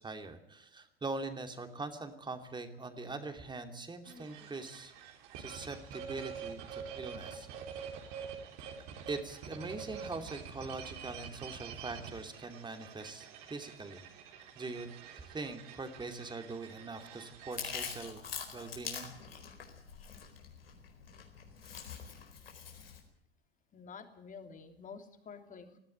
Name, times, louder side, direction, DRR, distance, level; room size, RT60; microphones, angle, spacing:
voice 1, 0.0-4.9 5.4-8.1 9.1-14.0 14.5-14.9 15.1-18.2 18.5-19.1, right 3 dB, 15° right, 7 dB, 2.8 m, -42 dB
voice 2, 4.1-4.5 8.0-8.3 23.7-25.8, left 5 dB, 25° left, 6 dB, 3.1 m, -50 dB
sound 1, 4.1-17.6, right 7 dB, 55° right, 3.8 m, -47 dB
Chewing mastication, 17.5-23.0, left 7 dB, 75° left, 4.5 m, -44 dB
20.0 x 15.0 x 9.2 m, 0.74 s
figure-of-eight pair, 80°, 29 cm